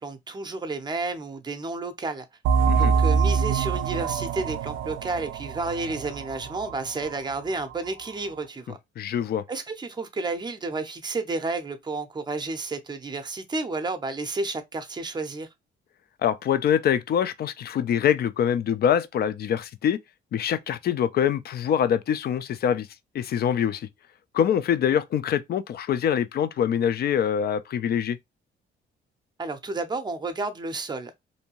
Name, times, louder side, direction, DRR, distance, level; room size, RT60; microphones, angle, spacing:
voice 1, 0.0-2.2 2.8-8.8 9.5-15.5 29.4-31.1, right 3 dB, 20° right, 0.6 m, -31 dB
sound 1, 2.4-7.7, right 6 dB, 80° right, 0.5 m, -25 dB
voice 2, 9.0-9.4 16.2-20.0 20.3-22.9 23.1-23.9 24.3-28.2, left 9 dB, 50° left, 0.4 m, -24 dB
2.7 x 2.2 x 2.8 m
cardioid pair, 90°, 20 cm